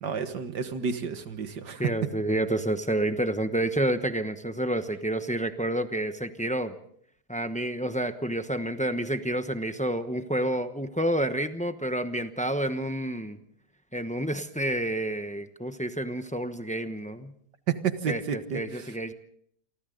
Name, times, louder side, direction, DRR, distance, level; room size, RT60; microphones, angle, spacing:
voice 1, 0.0-1.8 17.7-18.8, right 6 dB, 80° right, 9 dB, 2.0 m, -31 dB
voice 2, 1.8-6.7 7.3-13.4 13.9-17.3 18.1-19.1, right 1 dB, 5° left, 9 dB, 0.7 m, -29 dB
29.0 x 24.0 x 3.9 m, 0.64 s
omnidirectional pair, 1.8 m